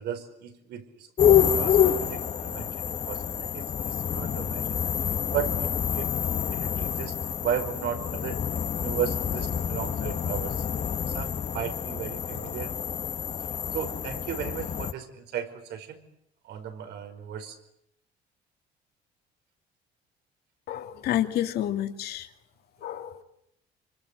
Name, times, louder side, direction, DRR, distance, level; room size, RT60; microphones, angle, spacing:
voice 1, 0.0-4.8 5.3-7.2 7.4-8.4 8.8-10.6 11.1-12.7 13.7-16.0 16.4-17.6, right 9 dB, 75° right, 9 dB, 5.0 m, -35 dB
sound 1, 1.2-14.9, left 8 dB, 45° left, 1.3 m, -27 dB
voice 2, 20.7-22.3 22.8-23.2, left 12 dB, 70° left, 6 dB, 2.6 m, -29 dB
26.5 x 24.5 x 8.1 m, 0.77 s
cardioid pair, 110°, 17 cm